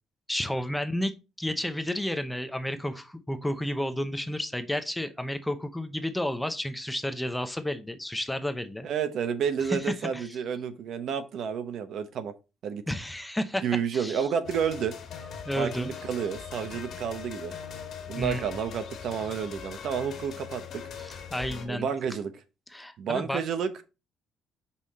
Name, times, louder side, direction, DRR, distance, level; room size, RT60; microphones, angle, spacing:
voice 1, 0.3-8.9 9.6-10.4 12.9-13.6 13.9-14.3 15.4-15.9 18.1-18.4 21.0-21.9 22.7-23.4, left 1 dB, 5° left, 0.7 m, -31 dB
voice 2, 8.8-12.3 12.6-12.8 13.6-14.9 15.6-17.5 18.1-20.8 21.7-22.3 23.0-23.7, right 7 dB, 60° right, 0.8 m, -30 dB
sound 1, 14.4-21.7, left 6 dB, 55° left, 1.9 m, -41 dB
5.7 x 4.8 x 4.1 m
cardioid pair, 130°, 0 cm